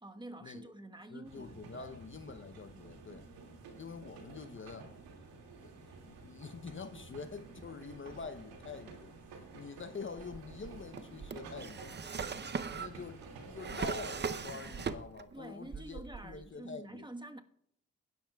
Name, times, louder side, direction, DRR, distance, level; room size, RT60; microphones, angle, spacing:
voice 1, 0.0-2.0 2.7-3.0 15.3-17.4, right 1 dB, 15° right, 1.2 m, -48 dB
voice 2, 1.1-3.3 3.8-4.9 5.6-5.7 6.0-9.2 9.5-11.9 12.5-17.0, left 5 dB, 35° left, 0.8 m, -46 dB
sound 1, 1.2-15.0, right 3 dB, 80° right, 2.3 m, -51 dB
Drawer open or close, 10.2-15.4 15.7-16.5, right 5 dB, 30° right, 0.7 m, -40 dB
18.5 x 10.5 x 2.3 m
hypercardioid pair, 40°, 35 cm